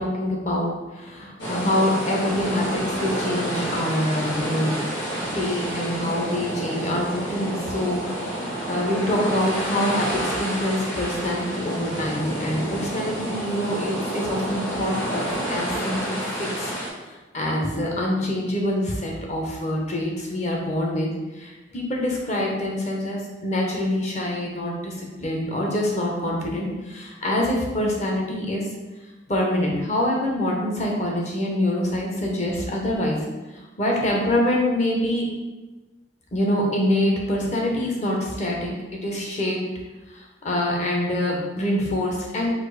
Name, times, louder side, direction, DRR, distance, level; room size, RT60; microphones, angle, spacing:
voice 1, 0.0-4.8 5.2-16.7 17.3-21.1 21.4-24.9 25.2-28.6 29.3-33.2 33.8-35.3 36.3-38.7 39.0-39.6 40.4-42.5, left 1 dB, 40° left, -1 dB, 0.9 m, -25 dB
sound 1, 1.4-16.9, right 1 dB, 85° left, 1.3 m, -29 dB
4.3 x 2.5 x 4.8 m, 1.2 s
head